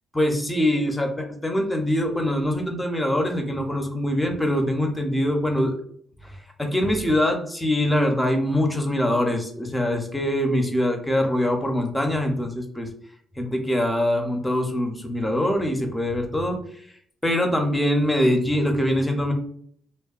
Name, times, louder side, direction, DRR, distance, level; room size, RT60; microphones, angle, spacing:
voice 1, 0.1-5.8 6.2-12.9 13.4-16.6 17.2-19.3, left 1 dB, 10° left, 3 dB, 0.6 m, -23 dB
2.7 x 2.2 x 2.4 m, 0.62 s
cardioid pair, 90°, 0 cm